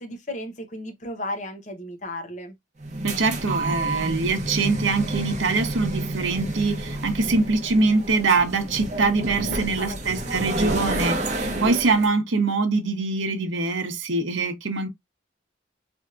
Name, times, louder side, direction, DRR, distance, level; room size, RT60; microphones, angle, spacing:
voice 1, 0.0-2.6 9.5-10.4, left 1 dB, 40° left, 0.8 m, -35 dB
sound 1, 2.8-12.1, right 2 dB, 35° right, 0.7 m, -29 dB
voice 2, 3.0-14.9, right 3 dB, 75° right, 0.8 m, -23 dB
3.5 x 2.8 x 2.4 m
head